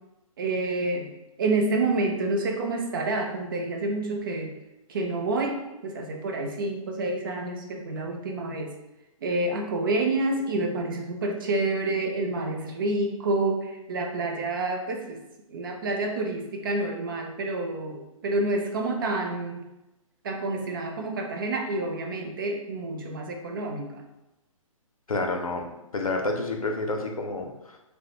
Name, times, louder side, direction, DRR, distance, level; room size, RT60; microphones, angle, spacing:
voice 1, 0.4-1.1 1.4-4.5 4.9-8.7 9.2-15.2 15.5-19.7 20.2-24.0, right 2 dB, 40° right, 3 dB, 0.4 m, -28 dB
voice 2, 25.1-25.6 25.9-27.8, left 2 dB, 80° left, 2 dB, 0.5 m, -29 dB
2.3 x 2.0 x 2.9 m, 0.96 s
figure-of-eight pair, 130°, 18 cm